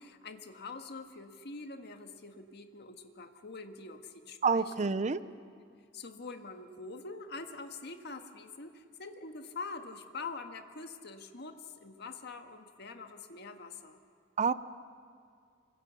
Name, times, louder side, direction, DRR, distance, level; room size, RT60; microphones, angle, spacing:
voice 1, 0.0-4.9 5.9-14.0, left 3 dB, 60° left, 6 dB, 1.6 m, -45 dB
voice 2, 4.4-5.2 14.4-14.5, right 5 dB, 35° right, 15 dB, 0.6 m, -27 dB
25.5 x 25.0 x 7.0 m, 2.2 s
head